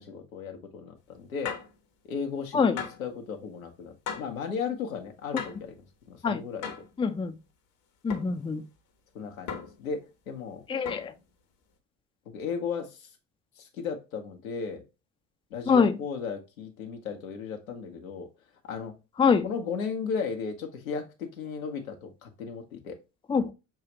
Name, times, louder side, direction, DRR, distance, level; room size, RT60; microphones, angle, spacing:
voice 1, 0.0-1.6 2.0-5.8 6.1-6.7 9.1-10.6 12.3-13.1 13.6-14.8 15.5-18.3 18.7-18.9 19.4-23.0, left 5 dB, 85° left, 1.1 m, -35 dB
sound 1, 1.4-1.8 2.8-3.1 4.1-4.4 5.4-5.7 6.6-6.9 8.1-8.4 9.5-9.9 10.9-11.2, left 7 dB, 60° left, 1.1 m, -37 dB
voice 2, 7.0-7.4 8.0-8.6 10.7-11.1 15.7-16.0 19.2-19.5 23.3-23.5, left 5 dB, 15° left, 0.5 m, -24 dB
6.6 x 2.4 x 2.9 m
hypercardioid pair, 65°, 40 cm